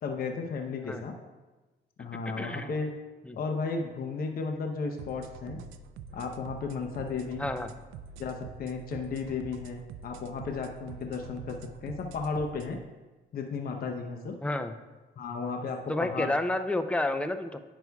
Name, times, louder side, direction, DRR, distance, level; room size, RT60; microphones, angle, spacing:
voice 1, 0.0-1.1 2.0-2.9 3.3-5.6 6.1-7.5 8.2-12.8 13.3-14.3 15.2-16.3, left 4 dB, 50° left, 3 dB, 0.7 m, -34 dB
voice 2, 2.4-2.7 3.3-3.4 7.4-7.7 14.4-14.7 15.9-17.6, left 2 dB, 5° left, 8 dB, 0.4 m, -30 dB
sound 1, 5.0-12.7, right 5 dB, 80° right, 0.4 m, -46 dB
9.2 x 6.0 x 2.3 m, 1.2 s
cardioid pair, 90°, 20 cm